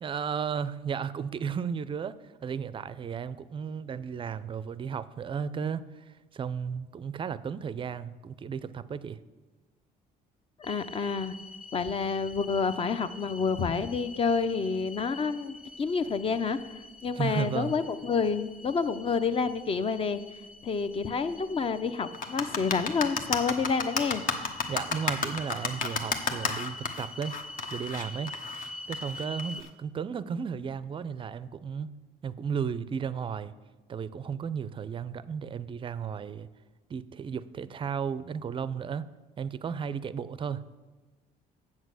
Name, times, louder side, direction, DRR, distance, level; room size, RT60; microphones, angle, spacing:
voice 1, 0.0-2.2 2.4-9.2 17.2-17.8 24.7-27.3 27.7-28.3 28.9-31.9 32.2-33.5 33.9-36.5 36.9-39.1 39.4-40.7, right 7 dB, 30° right, 16 dB, 0.4 m, -34 dB
voice 2, 10.6-11.4 11.7-16.6 17.0-20.2 20.6-24.2, left 5 dB, 35° left, 12 dB, 0.6 m, -29 dB
sound 1, 10.6-29.6, left 2 dB, 5° right, 0.7 m, -45 dB
sound 2, 22.1-29.7, left 5 dB, 55° left, 1.1 m, -31 dB
8.1 x 7.4 x 6.3 m, 1.2 s
cardioid pair, 110°, 17 cm